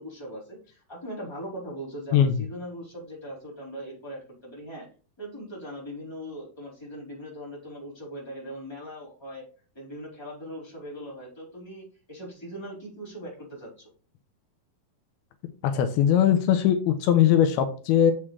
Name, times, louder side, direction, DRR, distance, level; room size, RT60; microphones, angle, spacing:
voice 1, 0.0-4.9 5.2-9.4 9.7-13.9, equal, 5° left, -6 dB, 4.0 m, -40 dB
voice 2, 15.6-18.1, left 9 dB, 85° left, 8 dB, 2.5 m, -20 dB
7.5 x 7.2 x 3.3 m, 0.39 s
omnidirectional pair, 4.6 m